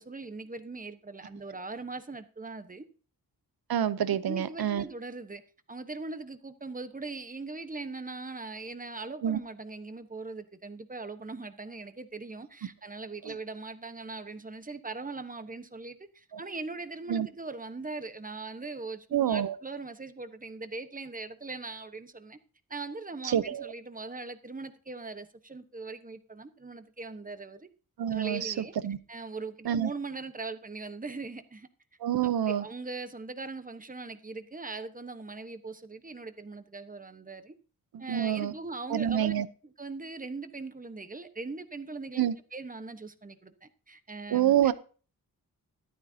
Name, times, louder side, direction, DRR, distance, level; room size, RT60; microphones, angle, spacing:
voice 1, 0.0-2.9 4.1-5.4 5.7-22.4 22.7-27.7 28.1-28.7 29.1-31.7 32.5-37.5 38.0-39.3 39.8-42.2 42.5-44.7, right 3 dB, 25° right, 1.1 m, -40 dB
voice 2, 3.7-4.8 9.2-9.4 16.3-16.4 17.1-17.3 19.1-19.6 23.2-23.7 28.0-29.0 29.6-29.9 32.0-32.6 37.9-38.5 38.9-39.5 42.2-42.3 44.3-44.7, right 10 dB, 85° right, 0.8 m, -27 dB
14.0 x 12.0 x 2.8 m
wide cardioid pair, 110°, 36 cm